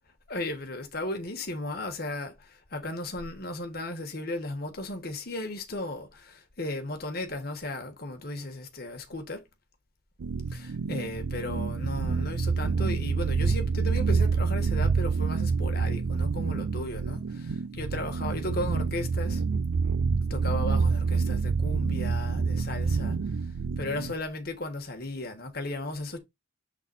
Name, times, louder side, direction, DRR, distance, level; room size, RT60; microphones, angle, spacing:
voice 1, 0.3-9.4 10.5-19.4 20.3-23.5 23.8-26.2, left 2 dB, 50° left, 1.5 m, -35 dB
sound 1, 10.2-24.1, right 5 dB, 85° right, 0.5 m, -27 dB
7.4 x 3.8 x 4.1 m
head